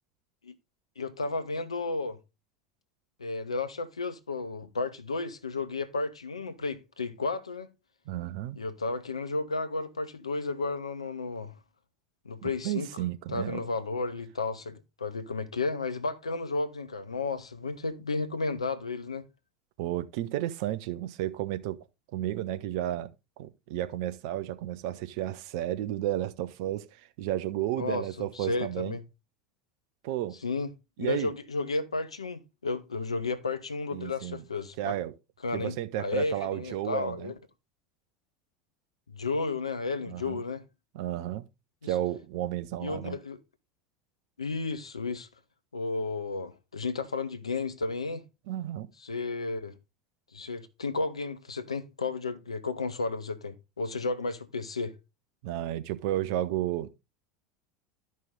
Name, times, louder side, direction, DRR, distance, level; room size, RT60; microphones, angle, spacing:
voice 1, 1.0-2.2 3.2-7.7 8.6-11.5 12.2-12.9 13.3-19.3 27.8-29.0 30.4-30.7 31.0-34.9 35.4-37.3 39.1-40.6 41.8-41.9 42.8-43.4 44.4-45.3 45.7-48.2 49.0-49.8 50.3-54.9, left 3 dB, 80° left, 0.9 m, -33 dB
voice 2, 8.1-8.6 12.4-13.7 19.8-21.8 22.1-23.1 23.4-28.9 30.0-30.4 31.0-31.3 33.9-34.4 34.8-35.1 35.5-37.3 40.1-40.4 40.9-41.4 41.8-43.2 48.5-48.9 55.4-56.9, right 13 dB, 60° right, 0.8 m, -32 dB
12.5 x 5.4 x 3.8 m
figure-of-eight pair, 75°, 3 cm